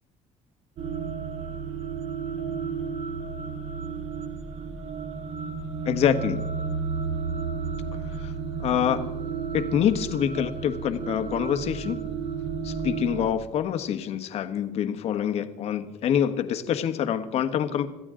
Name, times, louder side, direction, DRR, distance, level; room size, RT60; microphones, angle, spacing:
sound 1, 0.8-13.3, right 5 dB, 50° right, 2.0 m, -32 dB
voice 1, 5.8-6.4 8.1-8.3 8.6-9.1 9.5-12.0 12.6-17.9, left 9 dB, 50° left, 9 dB, 1.3 m, -26 dB
27.0 x 14.0 x 3.8 m, 1.0 s
cardioid pair, 155°, 13 cm